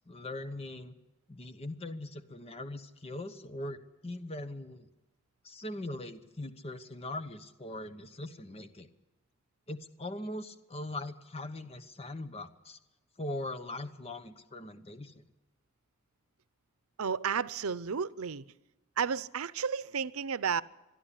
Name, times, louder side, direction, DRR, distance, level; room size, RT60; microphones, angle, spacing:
voice 1, 0.1-0.9 1.3-4.9 5.4-8.9 9.7-12.8 13.2-15.2, left 1 dB, 30° left, 1.0 m, -41 dB
voice 2, 17.0-18.5 19.0-20.6, right 6 dB, 90° right, 0.7 m, -32 dB
22.0 x 12.5 x 10.0 m
head